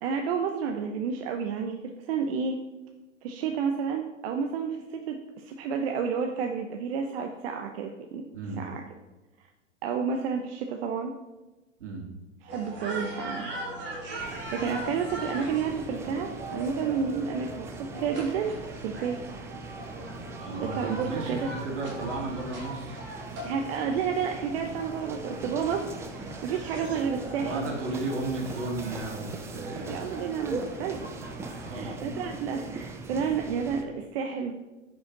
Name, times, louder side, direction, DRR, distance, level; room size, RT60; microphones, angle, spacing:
voice 1, 0.0-2.6 3.2-8.2 8.6-8.8 9.8-11.1 12.4-13.5 14.5-18.5 18.8-19.2 20.6-21.5 23.4-27.7 29.8-31.4 31.7-34.5, right 6 dB, 55° right, 3 dB, 0.9 m, -31 dB
voice 2, 8.3-8.6 11.8-12.1 20.4-23.0 27.4-30.0 31.6-32.0, right 2 dB, 75° right, 0 dB, 2.5 m, -34 dB
sound 1, 12.5-31.7, right 1 dB, 30° right, 2.2 m, -41 dB
sound 2, 14.2-33.8, right 3 dB, 10° right, 0.3 m, -41 dB
10.0 x 5.6 x 3.9 m, 1.1 s
hypercardioid pair, 115°, 37 cm